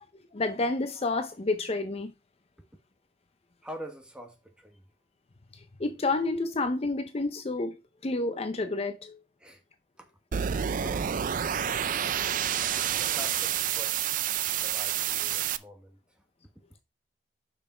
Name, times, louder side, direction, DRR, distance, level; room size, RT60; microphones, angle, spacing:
voice 1, 0.3-2.1 5.8-7.8 8.0-9.2, left 2 dB, 35° left, 0.6 m, -29 dB
voice 2, 3.6-4.9 9.4-9.6 10.0-10.1 10.8-12.2 12.9-14.2 14.5-16.2, equal, 5° right, 1.4 m, -46 dB
sound 1, 10.3-15.6, right 9 dB, 45° right, 0.4 m, -29 dB
6.6 x 5.8 x 4.3 m
head